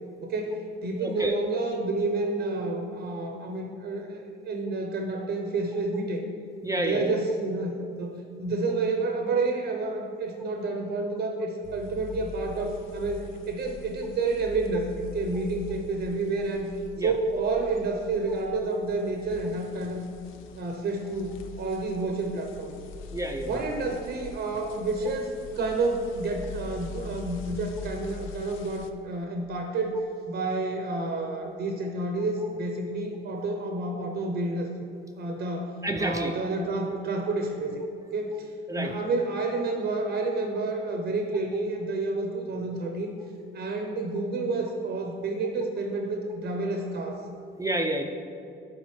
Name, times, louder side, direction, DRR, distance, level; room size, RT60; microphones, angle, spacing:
voice 1, 0.2-6.2 6.8-7.7 8.0-16.7 17.0-20.1 20.6-22.7 23.5-34.7 35.2-35.7 36.0-37.8 38.1-43.1 43.5-47.2, right 3 dB, 65° right, 3 dB, 0.7 m, -29 dB
voice 2, 1.0-1.4 6.6-7.1 17.0-17.1 23.1-23.7 35.8-36.3 38.7-38.9 47.6-48.0, right 1 dB, 15° right, 3 dB, 0.4 m, -29 dB
sound 1, 11.6-28.9, left 4 dB, 90° left, 0.5 m, -43 dB
11.0 x 4.0 x 3.1 m, 2.6 s
cardioid pair, 90°, 20 cm